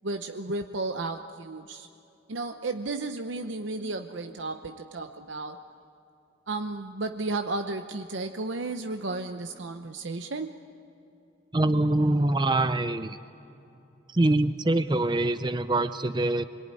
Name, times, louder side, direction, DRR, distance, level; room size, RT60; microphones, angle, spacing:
voice 1, 0.0-1.9 2.3-5.6 6.5-10.6, right 3 dB, 75° right, 6 dB, 0.8 m, -33 dB
voice 2, 11.5-13.2 14.1-16.4, right 2 dB, 20° right, 11 dB, 0.5 m, -24 dB
26.0 x 22.5 x 9.8 m, 2.8 s
head